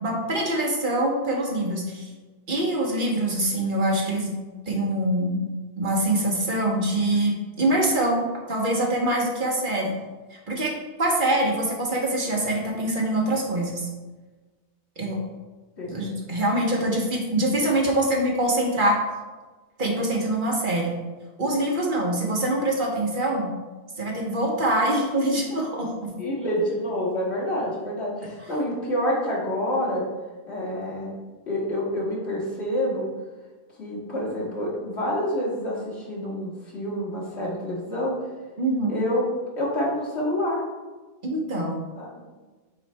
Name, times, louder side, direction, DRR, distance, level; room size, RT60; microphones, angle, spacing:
voice 1, 0.0-2.1 2.5-4.3 4.7-5.4 5.8-9.9 10.3-10.7 11.0-13.9 15.0-15.2 15.8-19.0 19.8-20.9 21.4-23.5 24.0-26.1 38.6-39.0 41.2-41.8, right 1 dB, 50° right, -1 dB, 1.3 m, -24 dB
voice 2, 26.2-30.1 30.5-31.1 31.5-33.1 33.8-38.1 38.9-39.2 39.6-40.7 42.0-42.1, equal, 90° left, -5 dB, 2.1 m, -27 dB
8.1 x 4.1 x 3.4 m, 1.3 s
omnidirectional pair, 1.1 m